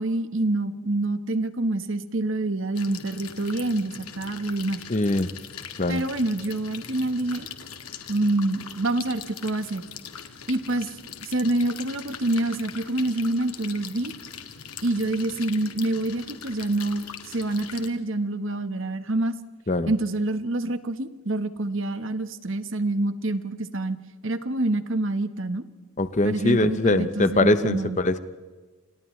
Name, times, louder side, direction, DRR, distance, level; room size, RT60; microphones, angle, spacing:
voice 1, 0.0-4.8 5.9-7.5 8.1-9.8 10.5-10.9 11.2-14.1 14.8-19.4 19.9-24.0 24.2-25.6 26.2-28.0, right 2 dB, 60° right, 10 dB, 1.3 m, -26 dB
sound 1, 2.8-17.9, left 7 dB, 90° left, 2.0 m, -41 dB
voice 2, 4.9-5.3 5.8-6.0 19.7-19.9 26.0-28.2, left 2 dB, 35° left, 11 dB, 0.8 m, -22 dB
29.5 x 27.5 x 3.3 m, 1.3 s
head